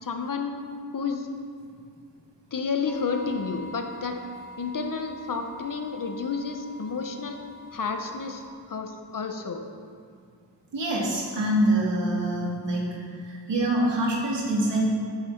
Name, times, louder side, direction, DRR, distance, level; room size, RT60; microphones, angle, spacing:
voice 1, 0.0-0.6 0.9-1.3 2.5-4.2 4.6-7.4 7.7-9.6, left 5 dB, 50° left, 5 dB, 1.0 m, -31 dB
sound 1, 2.9-8.5, equal, ahead, 2.5 m, -45 dB
voice 2, 10.7-13.0 13.2-14.9, right 1 dB, 85° right, -4 dB, 2.9 m, -25 dB
14.5 x 6.9 x 5.8 m, 2.2 s
wide cardioid pair, 180°, 42 cm